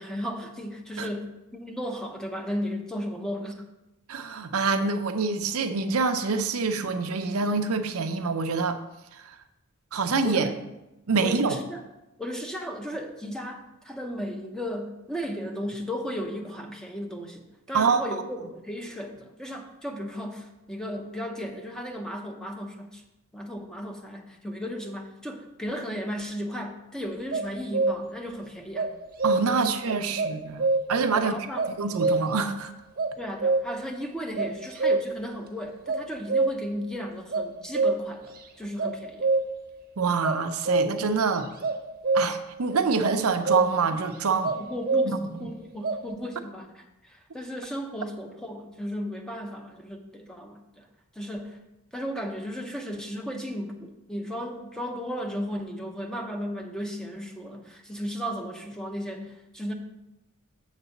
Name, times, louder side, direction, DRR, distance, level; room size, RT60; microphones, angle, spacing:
voice 1, 0.0-3.6 10.2-10.5 11.2-11.8 12.2-23.0 23.3-28.9 29.6-30.3 31.1-31.7 32.0-32.1 33.2-39.3 44.5-50.9 51.1-51.6 51.9-59.7, equal, 5° left, 3 dB, 0.6 m, -35 dB
voice 2, 4.1-8.8 9.2-9.4 9.9-10.5 11.1-11.6 17.7-18.0 29.2-31.4 31.8-32.7 40.0-41.5 42.1-44.5 45.1-45.2, right 4 dB, 75° right, 7 dB, 0.6 m, -26 dB
sound 1, 27.3-28.2 28.7-29.7 30.2-31.1 31.6-32.5 33.0-33.9 34.4-35.3 35.9-36.8 37.3-38.4 38.8-39.7 40.2-41.1 41.6-42.5 43.0-43.9 44.4-45.4 45.8-46.0, right 3 dB, 40° right, 0.8 m, -26 dB
7.4 x 4.0 x 5.8 m, 0.94 s
head